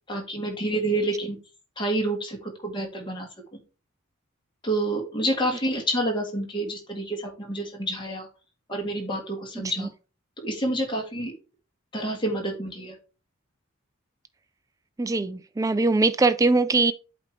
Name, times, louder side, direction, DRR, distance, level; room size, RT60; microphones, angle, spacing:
voice 1, 0.1-1.4 1.8-3.6 4.6-8.3 8.7-9.9 10.4-11.3 11.9-13.0, right 1 dB, 20° left, 1.9 m, -28 dB
voice 2, 9.6-9.9 15.0-16.9, right 3 dB, 15° right, 0.3 m, -22 dB
8.1 x 3.0 x 4.6 m
head